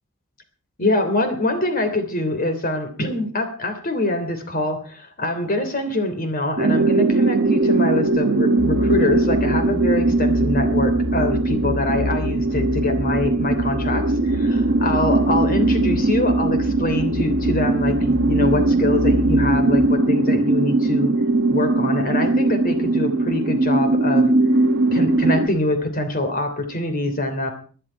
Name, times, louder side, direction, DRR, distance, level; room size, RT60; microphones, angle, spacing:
voice 1, 0.8-21.1 21.5-24.3 24.9-27.5, left 1 dB, 40° left, 8 dB, 3.2 m, -24 dB
sound 1, 6.6-25.5, right 2 dB, 50° right, 1.2 m, -20 dB
sound 2, 8.6-19.9, left 2 dB, 60° left, 2.0 m, -30 dB
19.0 x 12.0 x 4.6 m, 0.39 s
head